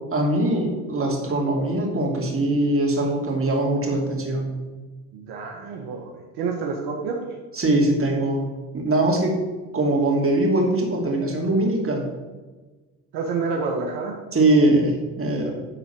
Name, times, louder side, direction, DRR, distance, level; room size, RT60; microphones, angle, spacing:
voice 1, 0.1-4.6 7.5-9.3 9.7-12.1 14.3-15.5, right 1 dB, 35° right, 0 dB, 2.9 m, -22 dB
voice 2, 5.1-7.2 13.1-14.2 15.4-15.5, right 4 dB, 70° right, 1 dB, 1.6 m, -28 dB
10.5 x 4.4 x 7.1 m, 1.3 s
supercardioid pair, 75°, 40 cm